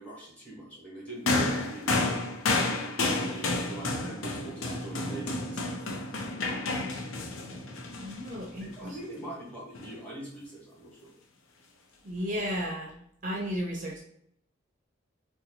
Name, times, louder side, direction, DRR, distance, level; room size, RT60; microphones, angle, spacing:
voice 1, 0.0-2.0 2.5-7.0 8.5-11.1, right 1 dB, 5° left, -5 dB, 1.1 m, -44 dB
sound 1, 1.3-8.8 9.8-9.9, left 2 dB, 85° left, 0.6 m, -30 dB
voice 2, 8.0-8.9 12.0-12.9 13.2-14.0, equal, 40° right, -1 dB, 0.5 m, -33 dB
4.1 x 2.2 x 2.8 m, 0.72 s
head